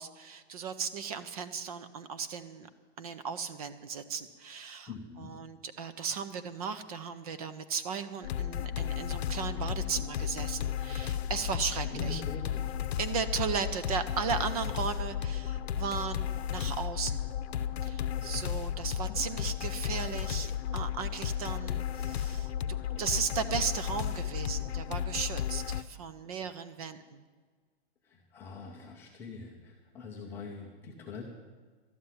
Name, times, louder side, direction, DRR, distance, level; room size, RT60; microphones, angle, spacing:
voice 1, 0.0-2.7 3.0-4.9 5.2-12.2 13.0-17.2 17.8-27.2, right 6 dB, 35° right, 12 dB, 0.6 m, -36 dB
voice 2, 4.9-5.4 11.2-11.3 11.9-12.7 19.1-19.5 26.3-26.4 28.0-31.2, left 3 dB, 5° left, -2 dB, 0.5 m, -44 dB
sound 1, 8.2-25.8, left 10 dB, 75° left, 0.7 m, -34 dB
12.5 x 7.4 x 9.6 m, 1.5 s
hypercardioid pair, 170°, 32 cm